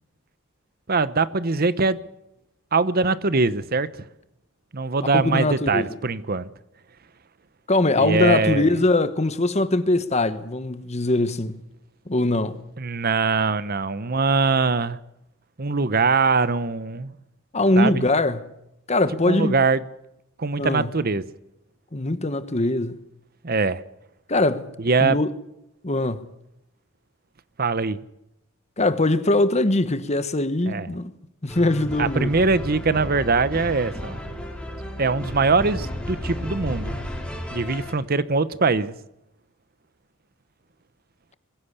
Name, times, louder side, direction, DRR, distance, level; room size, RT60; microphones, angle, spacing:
voice 1, 0.9-2.0 2.7-3.9 4.7-6.5 8.0-8.7 12.8-15.0 15.6-17.1 17.8-18.0 19.3-19.8 20.4-21.2 23.4-23.8 24.8-25.2 27.6-28.0 30.7-30.9 32.0-34.2 35.0-37.0 37.5-39.0, right 4 dB, 45° right, 0.9 m, -22 dB
voice 2, 5.1-5.9 7.7-11.6 12.1-12.6 17.5-18.5 18.9-19.5 20.6-20.9 21.9-22.9 24.3-24.7 25.0-25.3 25.8-26.2 28.8-31.1 31.4-32.3, left 2 dB, 35° left, 1.2 m, -22 dB
sound 1, 31.5-37.9, equal, 5° left, 3.9 m, -33 dB
22.0 x 15.5 x 8.2 m
head